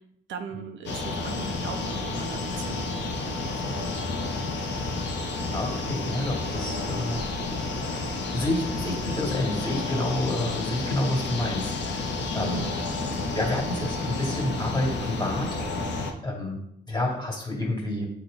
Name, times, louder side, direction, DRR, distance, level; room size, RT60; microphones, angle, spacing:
voice 1, 0.3-3.9 12.3-12.7, right 7 dB, 70° right, 5 dB, 0.8 m, -39 dB
sound 1, 0.9-16.1, left 3 dB, 65° left, 1.0 m, -30 dB
voice 2, 5.5-7.2 8.0-12.6 13.3-16.6 16.9-18.1, left 1 dB, 20° left, -1 dB, 2.1 m, -29 dB
8.0 x 3.2 x 3.8 m, 0.78 s
cardioid pair, 90°, 20 cm